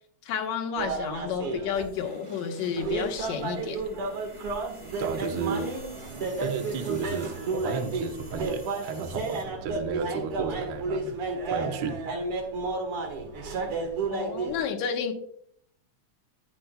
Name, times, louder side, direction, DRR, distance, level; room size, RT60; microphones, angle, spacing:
voice 1, 0.3-3.8 14.1-15.1, left 7 dB, 75° left, 4 dB, 2.2 m, -31 dB
sound 1, 0.8-1.9 2.8-14.6, right 3 dB, 55° right, 2.3 m, -32 dB
sound 2, 1.7-9.4, equal, 25° right, 0.6 m, -45 dB
voice 2, 5.0-5.8 6.4-11.2 11.5-12.0, right 5 dB, 75° right, 4 dB, 0.9 m, -33 dB
11.5 x 8.9 x 2.2 m, 0.66 s
omnidirectional pair, 3.3 m